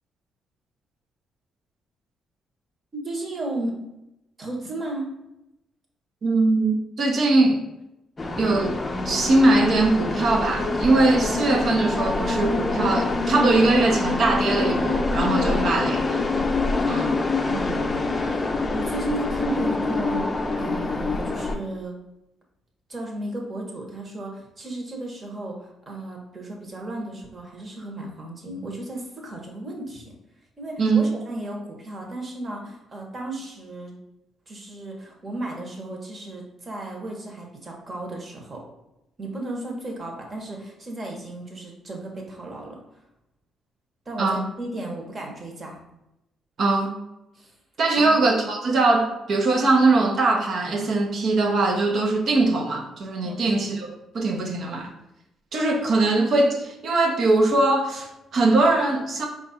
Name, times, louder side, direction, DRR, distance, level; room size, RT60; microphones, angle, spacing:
voice 1, 2.9-3.7 4.4-5.1 15.4-15.7 17.4-18.1 18.7-21.9 22.9-30.1 30.6-33.9 34.5-38.6 39.2-42.8 44.0-45.8 47.3-47.5 48.0-48.1 53.2-53.5, right 2 dB, 35° right, 0 dB, 1.2 m, -34 dB
voice 2, 6.2-7.6 8.4-8.8 9.0-16.0 16.9-17.1 30.8-31.1 44.2-44.5 46.6-46.9 47.8-54.9 55.5-59.3, right 2 dB, 55° right, 3 dB, 0.8 m, -21 dB
sound 1, 8.2-21.5, left 3 dB, 30° left, 0.5 m, -25 dB
4.5 x 2.5 x 4.2 m, 0.90 s
cardioid pair, 90°, 0 cm